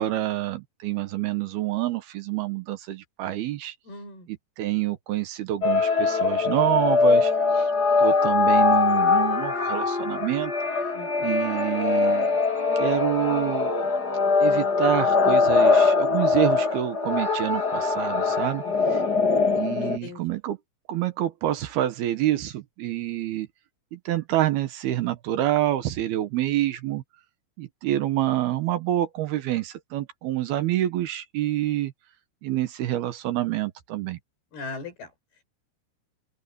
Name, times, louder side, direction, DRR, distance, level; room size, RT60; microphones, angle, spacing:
voice 1, 0.0-3.8 4.3-7.7 8.0-10.5 11.2-12.4 12.8-13.9 14.4-18.6 18.9-19.0 19.6-20.6 20.9-23.5 23.9-27.0 27.6-31.9 32.4-34.2, right 13 dB, 70° right, 2.9 m, -27 dB
voice 2, 3.9-4.3 10.9-11.3 18.6-19.1 19.8-20.2 34.5-35.1, left 3 dB, 65° left, 7.4 m, -39 dB
sound 1, 5.6-20.0, left 4 dB, 30° left, 2.5 m, -22 dB
open air
omnidirectional pair, 4.9 m